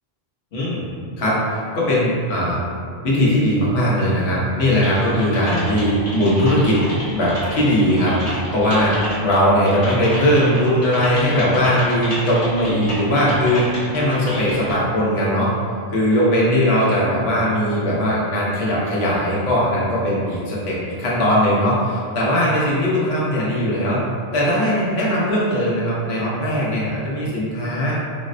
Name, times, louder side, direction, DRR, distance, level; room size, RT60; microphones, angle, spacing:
voice 1, 0.5-0.8 1.2-2.6 3.0-6.8 7.1-13.7 13.9-15.5 15.9-24.0 24.3-27.9, equal, 85° left, -6 dB, 1.0 m, -19 dB
Typing, 4.8-14.7, equal, 40° left, 0.9 m, -31 dB
3.9 x 2.1 x 2.5 m, 2.3 s
omnidirectional pair, 1.1 m